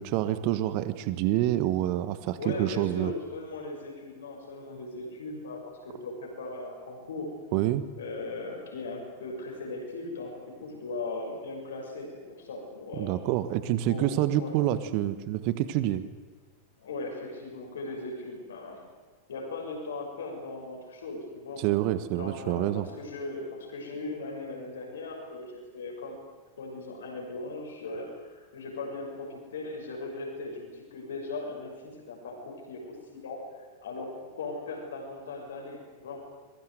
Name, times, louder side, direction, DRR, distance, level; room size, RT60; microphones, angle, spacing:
voice 1, 0.0-3.1 7.5-7.8 13.0-16.0 21.6-22.9, right 13 dB, 45° right, 13 dB, 1.4 m, -27 dB
voice 2, 2.4-7.3 8.0-10.3 10.6-13.1 13.9-14.6 16.8-18.8 19.3-21.6 22.2-26.2 26.6-36.2, left 2 dB, 65° left, 1 dB, 6.4 m, -38 dB
27.5 x 22.0 x 8.0 m, 1.3 s
figure-of-eight pair, 90°, 0 cm